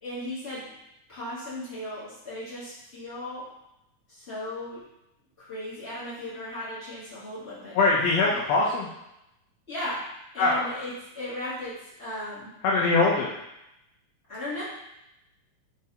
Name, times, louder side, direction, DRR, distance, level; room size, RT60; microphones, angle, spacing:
voice 1, 0.0-0.7 1.1-3.5 4.1-4.8 5.4-7.8 8.3-8.4 9.7-10.1 10.3-12.5 14.3-14.6, left 1 dB, 35° left, -11 dB, 1.1 m, -36 dB
voice 2, 7.7-8.9 10.4-10.6 12.6-13.3, left 3 dB, 75° left, -3 dB, 1.5 m, -22 dB
4.8 x 3.3 x 2.8 m, 0.86 s
omnidirectional pair, 3.4 m